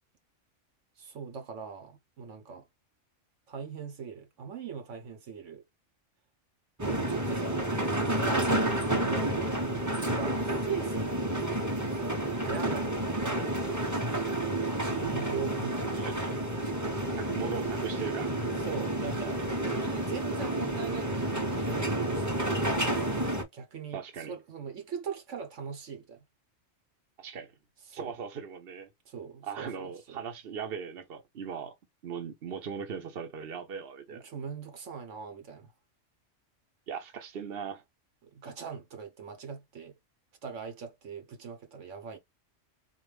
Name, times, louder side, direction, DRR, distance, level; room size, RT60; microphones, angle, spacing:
voice 1, 1.0-2.6 3.5-5.6 6.8-11.4 11.8-12.2 12.4-13.6 13.9-14.4 14.8-16.4 18.6-19.4 19.8-26.2 27.9-28.1 29.0-30.2 34.1-35.7 38.2-40.0 40.4-42.2, right 6 dB, 80° right, 1.3 m, -41 dB
sound 1, 6.8-23.4, right 1 dB, 15° right, 0.9 m, -30 dB
voice 2, 15.8-16.3 17.2-18.4 23.9-24.4 27.2-27.5 27.9-28.9 29.4-31.7 32.0-34.2 36.9-37.8, right 6 dB, 55° right, 1.1 m, -38 dB
4.0 x 2.6 x 3.4 m
omnidirectional pair, 1.3 m